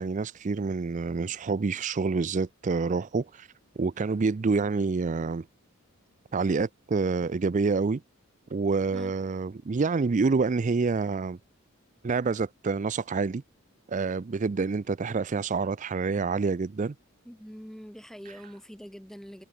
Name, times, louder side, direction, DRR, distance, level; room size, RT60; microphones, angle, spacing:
voice 1, 0.0-3.5 3.8-5.5 6.3-8.0 8.5-11.4 12.0-13.4 13.9-16.9 18.3-18.5, right 4 dB, 35° right, 0.4 m, -27 dB
voice 2, 17.3-19.4, equal, ahead, 1.8 m, -44 dB
head